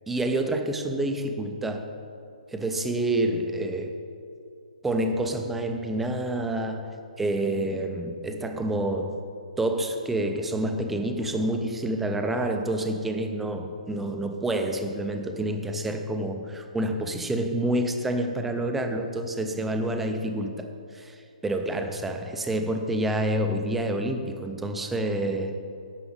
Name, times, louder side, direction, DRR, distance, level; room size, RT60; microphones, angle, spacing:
voice 1, 0.1-1.9 2.5-4.0 4.8-9.2 9.6-25.6, right 1 dB, 5° right, 5 dB, 0.4 m, -28 dB
9.8 x 5.8 x 7.0 m, 2.6 s
hypercardioid pair, 175°, 4 cm